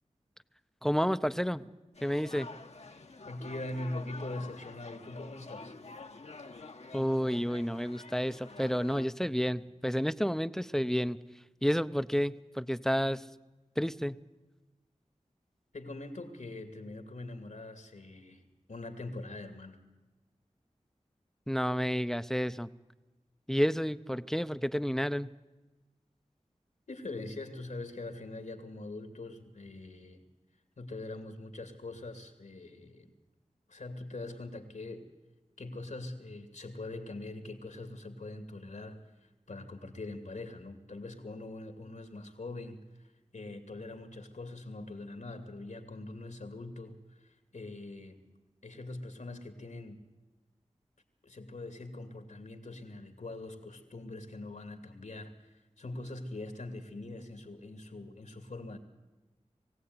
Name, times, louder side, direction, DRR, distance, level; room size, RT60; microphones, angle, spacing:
voice 1, 0.8-1.7 2.0-2.5 6.9-11.2 11.6-13.2 13.8-14.2 21.5-22.7 23.5-25.3, equal, 5° left, 14 dB, 0.6 m, -30 dB
sound 1, 1.9-9.1, left 3 dB, 60° left, 1.2 m, -48 dB
voice 2, 3.2-5.7 15.7-18.4 18.7-19.8 26.9-30.2 30.8-33.1 33.7-35.1 35.6-48.3 48.6-50.0 51.2-58.8, left 2 dB, 80° left, 8 dB, 2.6 m, -43 dB
22.0 x 16.5 x 9.6 m, 1.1 s
wide cardioid pair, 75°, 13 cm